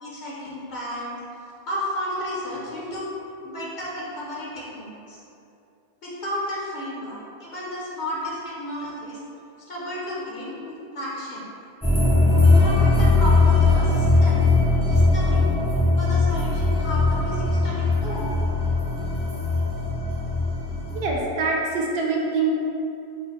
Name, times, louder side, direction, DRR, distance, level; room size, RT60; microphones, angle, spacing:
voice 1, 0.0-1.2 1.7-3.0 3.4-5.2 6.0-9.2 9.7-11.4 12.4-14.5 14.9-15.4 16.0-18.3, left 1 dB, 50° left, -7 dB, 0.9 m, -33 dB
sound 1, 11.8-21.1, left 3 dB, 10° left, 0.4 m, -20 dB
voice 2, 20.9-22.5, right 4 dB, 80° right, -2 dB, 0.8 m, -25 dB
3.8 x 2.0 x 4.0 m, 2.7 s
omnidirectional pair, 1.0 m